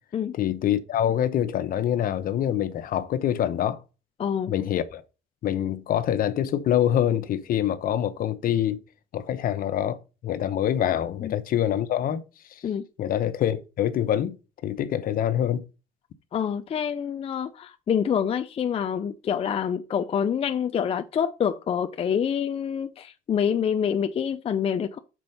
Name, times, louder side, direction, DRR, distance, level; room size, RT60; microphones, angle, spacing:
voice 1, 0.3-3.8 4.5-5.0 5.4-8.8 9.1-12.2 12.5-12.6 13.0-14.4 14.6-15.6, left 10 dB, 60° left, 0.8 m, -25 dB
voice 2, 4.2-4.5 11.2-11.3 12.6-12.9 16.3-25.0, left 8 dB, 35° left, 0.5 m, -26 dB
6.1 x 4.4 x 5.4 m
cardioid pair, 110°, 17 cm